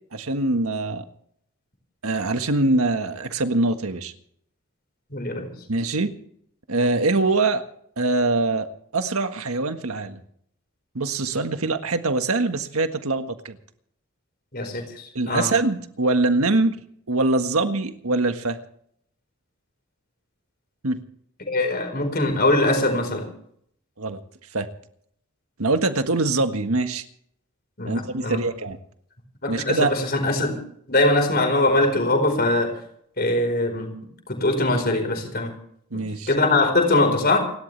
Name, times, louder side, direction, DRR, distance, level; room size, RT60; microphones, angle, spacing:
voice 1, 0.1-1.0 2.0-4.1 5.7-6.1 6.7-7.6 8.0-10.2 10.9-13.6 15.1-16.8 17.1-18.6 20.8-21.0 24.0-24.2 24.5-24.7 25.6-27.0 27.8-28.8 29.5-29.9 35.9-36.3, right 2 dB, 85° right, 7 dB, 1.6 m, -23 dB
voice 2, 5.1-5.5 14.5-15.5 21.5-23.3 27.8-28.4 29.4-30.6 30.9-32.8 33.2-33.9 34.3-35.6 36.3-37.4, left 2 dB, 45° left, 5 dB, 4.6 m, -22 dB
29.5 x 12.5 x 3.4 m, 0.67 s
head